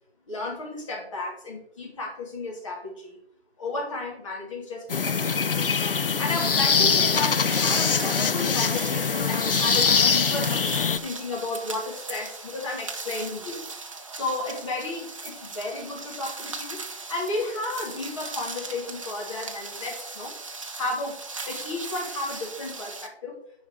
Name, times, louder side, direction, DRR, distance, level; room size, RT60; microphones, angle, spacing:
voice 1, 0.3-3.2 3.6-13.6 14.1-16.8 17.1-20.3 20.8-21.2 21.5-23.3, left 2 dB, 30° left, -2 dB, 2.5 m, -33 dB
sound 1, 4.9-11.0, left 5 dB, 60° left, 0.6 m, -23 dB
sound 2, 5.0-23.1, right 3 dB, 30° right, 0.8 m, -38 dB
8.8 x 5.0 x 5.0 m, 0.67 s
figure-of-eight pair, 160°, 32 cm